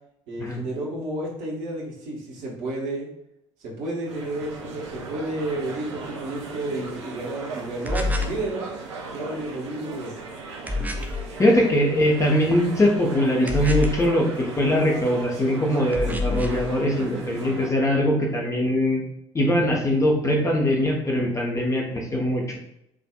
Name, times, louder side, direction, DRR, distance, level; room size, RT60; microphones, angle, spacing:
voice 1, 0.3-3.1 3.6-8.7 9.1-10.1, right 2 dB, 55° right, -3 dB, 1.3 m, -31 dB
sound 1, 4.1-17.7, right 4 dB, 75° right, 0.5 m, -38 dB
sound 2, 7.9-8.4 10.7-11.3 13.5-14.1 15.9-16.7, left 3 dB, 10° right, 0.4 m, -26 dB
voice 2, 11.4-19.0 19.3-22.6, equal, 20° left, -1 dB, 0.9 m, -22 dB
4.8 x 2.6 x 2.3 m, 0.79 s
figure-of-eight pair, 55°, 15 cm